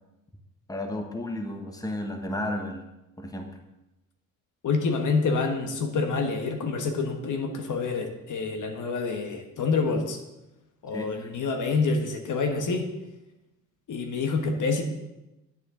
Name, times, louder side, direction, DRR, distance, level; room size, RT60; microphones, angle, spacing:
voice 1, 0.7-2.8 3.2-3.6 10.9-11.3, left 1 dB, 10° left, 5 dB, 1.3 m, -33 dB
voice 2, 4.6-10.2 10.8-12.9 13.9-14.8, left 4 dB, 55° left, 5 dB, 1.3 m, -27 dB
9.4 x 8.7 x 3.8 m, 0.96 s
supercardioid pair, 70°, 37 cm